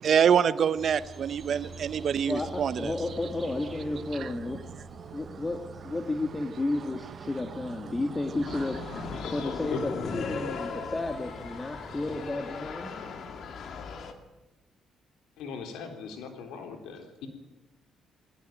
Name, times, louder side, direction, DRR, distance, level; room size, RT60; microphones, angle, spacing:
voice 1, 0.0-2.9 4.2-4.3, right 8 dB, 60° right, 0.8 m, -25 dB
sound 1, 0.7-12.3, right 4 dB, 25° right, 5.1 m, -46 dB
voice 2, 2.3-4.6 5.1-8.8 9.3-12.9, left 2 dB, 20° left, 2.0 m, -32 dB
sound 2, 8.4-14.1, left 5 dB, 65° left, 2.5 m, -37 dB
voice 3, 9.2-9.8 15.4-17.3, left 6 dB, 90° left, 3.6 m, -39 dB
19.5 x 18.0 x 9.2 m
cardioid pair, 90°, 0 cm